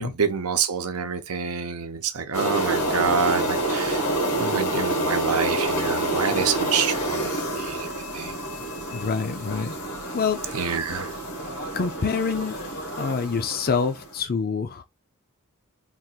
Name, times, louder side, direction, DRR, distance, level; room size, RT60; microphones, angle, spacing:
voice 1, 0.0-4.0 4.4-8.4 10.5-11.1, right 6 dB, 80° right, 0.7 m, -27 dB
sound 1, 2.3-14.1, right 1 dB, 85° left, 1.4 m, -28 dB
voice 2, 8.9-9.8 10.1-10.4 11.7-12.6 12.9-14.8, left 5 dB, 45° left, 0.5 m, -26 dB
3.6 x 2.4 x 4.5 m
head